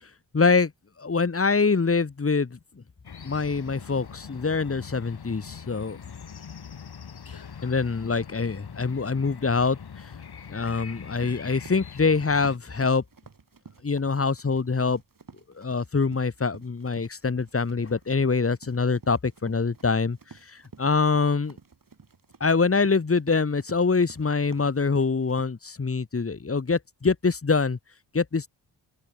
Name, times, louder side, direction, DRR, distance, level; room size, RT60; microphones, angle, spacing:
voice 1, 0.3-0.7 1.0-2.6 3.2-6.0 7.6-9.8 10.5-13.0 13.8-15.0 15.6-20.2 20.8-21.6 22.4-27.8 28.1-28.5, left 4 dB, 30° left, 1.9 m, -24 dB
sound 1, 3.0-12.6, left 6 dB, 55° left, 3.1 m, -42 dB
Run, 11.2-25.4, right 5 dB, 45° right, 7.4 m, -51 dB
open air
cardioid pair, 70°, 46 cm